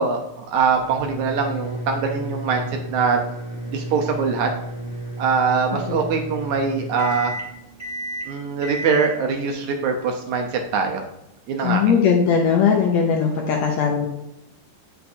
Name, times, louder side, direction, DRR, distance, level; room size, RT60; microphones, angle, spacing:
voice 1, 0.0-3.2 3.7-4.5 5.2-7.3 8.3-11.0 11.5-12.0, right 5 dB, 75° right, 3 dB, 1.8 m, -23 dB
sound 1, 0.5-10.9, right 1 dB, 10° right, 1.1 m, -33 dB
voice 2, 11.6-14.1, left 6 dB, 80° left, 0 dB, 1.6 m, -19 dB
8.5 x 5.8 x 2.7 m, 0.86 s
omnidirectional pair, 3.9 m